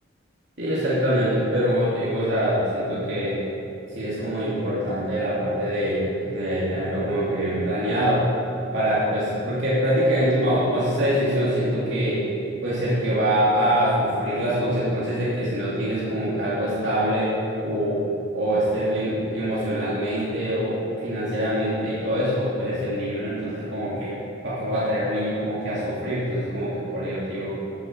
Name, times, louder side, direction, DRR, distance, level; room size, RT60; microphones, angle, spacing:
voice 1, 0.6-3.4 3.9-8.2 8.7-12.2 12.6-17.3 17.6-18.0 18.3-24.1 24.4-27.5, equal, 65° right, -9 dB, 2.9 m, -24 dB
13.5 x 10.5 x 4.7 m, 3.0 s
head